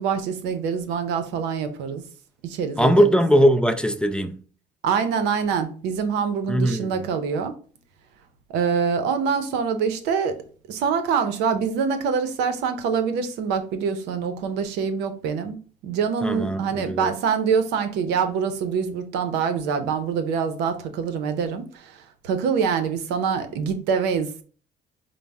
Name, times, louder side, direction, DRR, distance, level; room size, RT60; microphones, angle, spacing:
voice 1, 0.0-2.0 2.4-3.2 4.8-7.5 8.5-10.4 10.7-15.6 15.8-24.4, right 6 dB, 90° right, 0.6 m, -25 dB
voice 2, 2.8-4.4 6.5-7.1 16.2-17.1, equal, 5° left, 0.3 m, -20 dB
5.1 x 2.0 x 3.4 m
cardioid pair, 110°, 17 cm